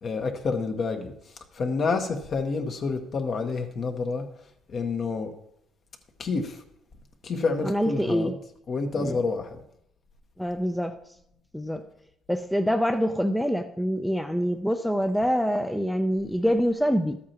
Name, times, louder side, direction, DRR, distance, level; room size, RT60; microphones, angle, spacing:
voice 1, 0.0-1.1 1.5-4.2 4.7-5.3 6.2-6.6 7.2-8.3 8.7-9.6, left 4 dB, 50° left, 5 dB, 1.2 m, -28 dB
voice 2, 7.6-8.3 9.0-9.2 10.4-11.0 11.5-11.8 12.3-17.2, equal, ahead, 7 dB, 0.5 m, -25 dB
12.5 x 8.5 x 2.9 m, 0.75 s
cardioid pair, 105°, 0 cm